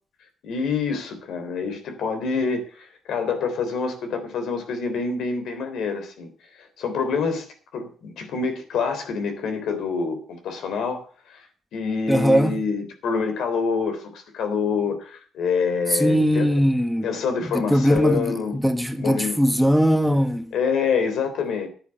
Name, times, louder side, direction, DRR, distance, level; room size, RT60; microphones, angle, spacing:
voice 1, 0.4-11.5 11.7-16.6 17.0-18.6 19.0-19.4 20.5-21.7, left 5 dB, 75° left, 3.6 m, -26 dB
voice 2, 12.1-12.5 15.9-17.1 17.5-20.5, equal, ahead, 1.4 m, -20 dB
11.0 x 9.5 x 6.5 m
cardioid pair, 90°, 0 cm